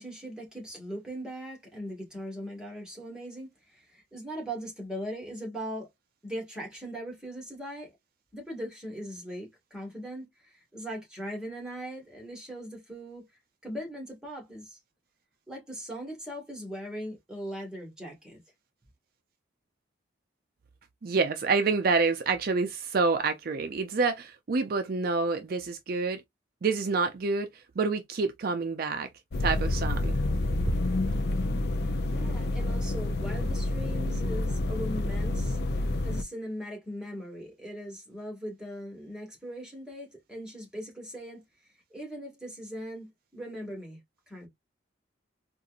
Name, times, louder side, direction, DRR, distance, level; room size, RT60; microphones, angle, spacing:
voice 1, 0.0-5.9 6.2-8.0 8.3-13.3 13.6-14.8 15.5-18.4 31.8-35.6 36.0-41.4 41.9-44.0 44.3-44.5, equal, 5° right, 1.7 m, -40 dB
voice 2, 21.0-26.2 26.6-27.5 27.8-29.1 29.4-30.2, right 4 dB, 50° right, 0.4 m, -27 dB
sound 1, 29.3-36.2, left 2 dB, 55° left, 0.5 m, -28 dB
4.1 x 2.5 x 2.4 m
head